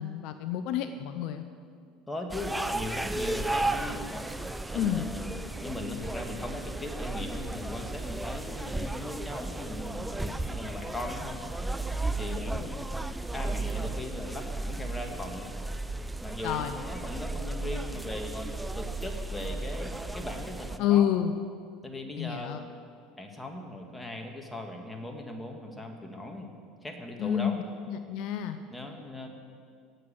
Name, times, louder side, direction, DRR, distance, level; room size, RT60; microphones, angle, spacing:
voice 1, 0.0-1.5 4.7-5.1 16.4-16.7 20.8-21.3 22.2-22.6 27.2-27.6 27.9-28.6, left 10 dB, 65° left, 9 dB, 0.7 m, -28 dB
voice 2, 2.1-4.1 4.7-11.4 12.2-12.7 13.3-15.5 16.2-18.5 18.8-21.1 21.8-22.6 23.2-26.5 26.8-27.6 28.7-29.3, left 1 dB, 10° left, 3 dB, 2.4 m, -39 dB
sound 1, 2.3-20.8, right 2 dB, 5° right, 0.7 m, -34 dB
17.0 x 7.9 x 7.8 m, 2.2 s
hypercardioid pair, 75°, 0 cm